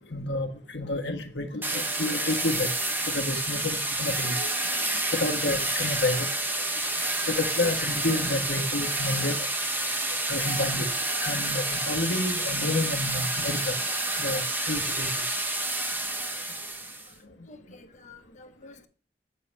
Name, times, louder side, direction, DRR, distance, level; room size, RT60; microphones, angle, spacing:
voice 1, 0.1-2.7 3.1-4.5 5.1-6.3 7.3-9.4 10.3-10.9 11.2-13.7 14.2-15.1, left 2 dB, 75° left, 1.4 m, -29 dB
sound 1, 1.6-17.1, right 2 dB, 10° right, 0.9 m, -29 dB
voice 2, 16.8-18.9, left 3 dB, 45° left, 1.0 m, -51 dB
8.6 x 6.7 x 3.3 m
head